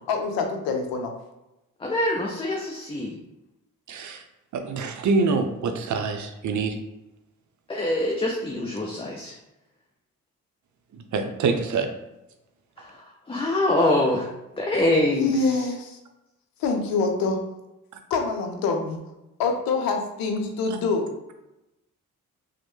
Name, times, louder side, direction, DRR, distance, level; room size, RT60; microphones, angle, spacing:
voice 1, 0.1-1.1 15.1-16.0 16.6-17.4 18.1-19.0 19.4-21.1, left 4 dB, 90° left, 4 dB, 0.5 m, -25 dB
voice 2, 1.8-3.2 7.7-9.3 12.8-14.3 14.6-15.3, left 1 dB, 15° left, -1 dB, 0.5 m, -24 dB
voice 3, 3.9-4.2 4.5-6.8 10.9-11.9, right 4 dB, 55° right, 5 dB, 0.6 m, -25 dB
3.0 x 2.1 x 3.1 m, 0.95 s
supercardioid pair, 50°, 34 cm